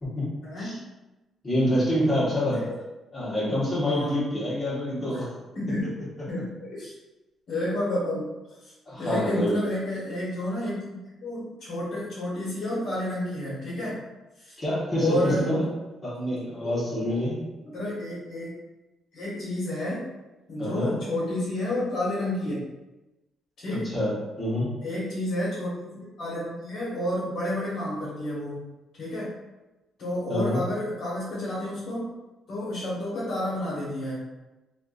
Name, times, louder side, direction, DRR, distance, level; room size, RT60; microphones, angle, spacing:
voice 1, 0.4-0.8 2.5-2.7 3.8-4.1 5.1-5.2 5.5-5.8 6.2-7.0 7.5-8.3 8.6-14.0 14.4-14.6 15.0-15.6 16.6-16.7 17.6-18.5 19.1-20.1 20.5-22.6 23.6-24.0 24.8-28.6 28.9-29.3 30.0-32.0 32.5-34.2, left 1 dB, 60° left, -8 dB, 1.3 m, -30 dB
voice 2, 1.4-2.7 3.1-5.3 8.9-9.6 14.6-15.7 16.0-17.5 20.6-21.0 23.7-24.7 30.3-30.6, left 1 dB, 30° left, -8 dB, 1.4 m, -26 dB
3.3 x 2.6 x 2.5 m, 1.1 s
cardioid pair, 90°, 0 cm